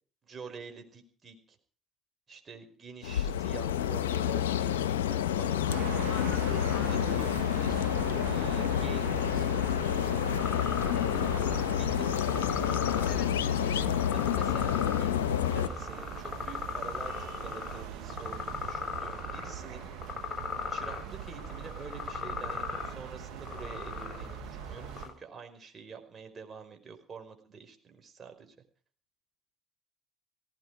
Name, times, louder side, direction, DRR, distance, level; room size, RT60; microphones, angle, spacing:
voice 1, 0.2-1.6 2.3-4.7 5.0-5.7 6.9-7.0 7.3-7.9 8.2-9.8 11.8-12.3 12.7-13.4 14.1-15.2 15.5-19.9 20.7-28.5, right 5 dB, 35° right, 5 dB, 5.1 m, -47 dB
sound 1, 3.0-15.7, left 10 dB, 90° left, 0.8 m, -29 dB
sound 2, 5.7-25.1, right 14 dB, 75° right, 0.8 m, -41 dB
voice 2, 6.1-7.3 10.9-11.3 13.1-13.6, left 13 dB, 65° left, 7 dB, 2.3 m, -43 dB
sound 3, 10.4-25.1, left 6 dB, 35° left, 7.9 m, -39 dB
18.0 x 17.0 x 4.8 m, 0.42 s
hypercardioid pair, 65°, 0 cm